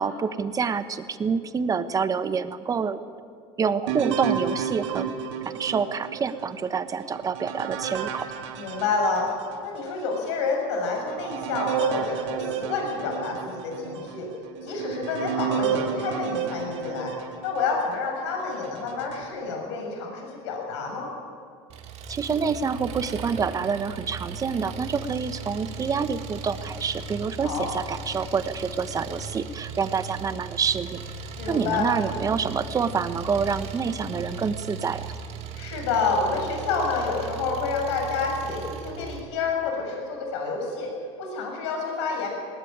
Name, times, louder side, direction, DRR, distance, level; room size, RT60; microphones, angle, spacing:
voice 1, 0.0-3.0 3.6-5.1 5.4-8.3 22.1-31.0 31.5-35.1, right 5 dB, 25° right, 11 dB, 1.2 m, -27 dB
sound 1, 3.9-9.6 10.2-10.3 10.8-18.0 18.6-19.2, right 8 dB, 85° right, 2.6 m, -31 dB
voice 2, 8.5-9.3 9.6-14.3 14.6-17.1 17.4-21.1 27.4-27.7 31.4-31.9 35.5-40.9 41.2-42.3, left 4 dB, 85° left, 1 dB, 6.7 m, -28 dB
Engine, 21.7-39.2, right 5 dB, 45° right, 2.5 m, -38 dB
19.5 x 19.0 x 8.8 m, 2.3 s
supercardioid pair, 115°, 14 cm